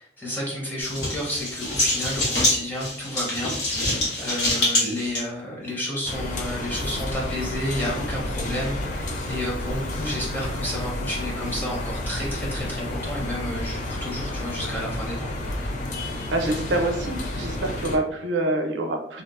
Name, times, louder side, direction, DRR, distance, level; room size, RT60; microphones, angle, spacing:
voice 1, 0.0-15.3, left 1 dB, 10° left, -4 dB, 0.6 m, -31 dB
sound 1, 0.8-5.2, left 1 dB, 70° left, 1.0 m, -25 dB
sound 2, 6.0-18.0, left 1 dB, 45° left, 0.4 m, -31 dB
voice 2, 16.3-19.2, right 2 dB, 85° right, 3 dB, 0.5 m, -26 dB
2.8 x 2.0 x 2.4 m, 0.66 s
head